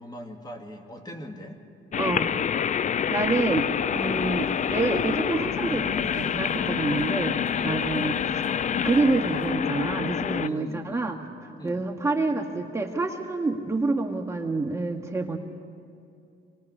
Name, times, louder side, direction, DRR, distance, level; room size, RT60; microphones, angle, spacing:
voice 1, 0.0-1.6 7.5-7.8 10.4-11.2 11.6-11.9, equal, 20° left, 4 dB, 2.2 m, -40 dB
sound 1, 1.9-10.5, left 8 dB, 40° left, 0.4 m, -27 dB
voice 2, 2.0-2.4 2.8-7.3 7.6-8.5 8.8-11.2 11.6-15.4, right 3 dB, 15° right, 1 dB, 1.5 m, -27 dB
sound 2, 3.9-9.5, left 5 dB, 85° left, 1.6 m, -43 dB
25.5 x 20.0 x 5.5 m, 2.5 s
cardioid pair, 90°, 20 cm